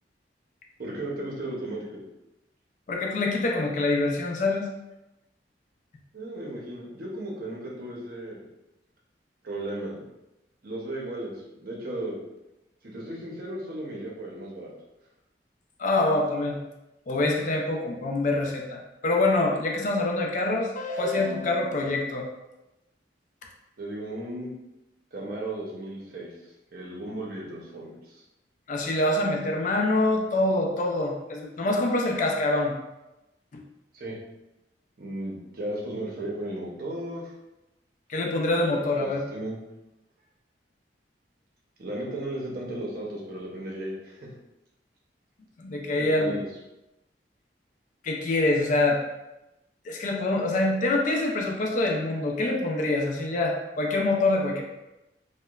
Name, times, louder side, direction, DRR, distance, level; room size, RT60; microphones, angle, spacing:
voice 1, 0.8-2.0 6.1-8.4 9.4-10.0 10.6-12.2 12.8-14.7 23.8-24.5 25.1-28.2 33.9-34.2 35.0-37.3 38.9-39.6 41.8-44.3 46.0-46.4, right 1 dB, 55° right, -3 dB, 0.6 m, -35 dB
voice 2, 2.9-4.7 15.8-16.6 17.1-22.3 28.7-32.8 33.5-33.6 38.1-39.2 45.6-46.4 48.0-49.0 49.8-54.6, left 2 dB, 45° left, 1 dB, 0.4 m, -25 dB
2.9 x 2.1 x 2.2 m, 0.96 s
head